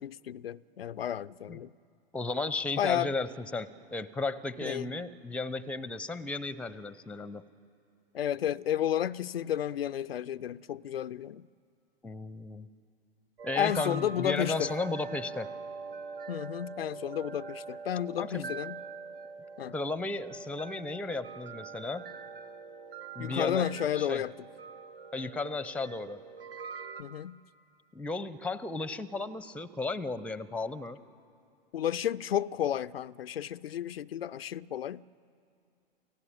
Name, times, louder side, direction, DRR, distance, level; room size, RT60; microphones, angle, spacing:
voice 1, 0.0-1.7 2.8-3.1 4.6-4.9 8.1-11.5 13.6-14.7 16.3-18.8 19.6-19.7 23.2-24.3 27.0-27.4 31.7-35.0, left 10 dB, 80° left, 0.5 m, -32 dB
voice 2, 2.1-7.5 12.0-12.7 13.4-15.5 18.2-18.5 19.7-22.1 23.2-23.7 23.9-24.2 25.1-26.2 27.9-31.0, left 3 dB, 5° left, 0.7 m, -34 dB
sound 1, 13.4-27.0, right 5 dB, 65° right, 1.2 m, -43 dB
29.0 x 16.0 x 8.7 m
figure-of-eight pair, 95°, 30 cm